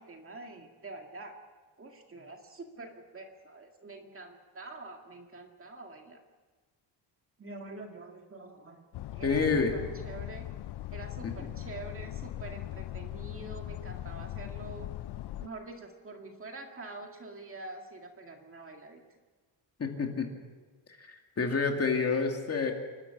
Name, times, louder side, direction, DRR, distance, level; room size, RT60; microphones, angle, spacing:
voice 1, 0.0-1.4 1.8-6.2 7.4-9.6 10.0-10.5 10.9-14.9 15.4-19.0, right 3 dB, 30° right, 3 dB, 2.1 m, -46 dB
sound 1, 8.9-15.5, left 14 dB, 60° left, 0.6 m, -40 dB
voice 2, 9.2-9.7 11.2-11.5 19.8-20.3 20.9-22.7, left 4 dB, 30° left, 3 dB, 2.4 m, -29 dB
28.0 x 12.5 x 8.5 m, 1.3 s
cardioid pair, 175°, 45 cm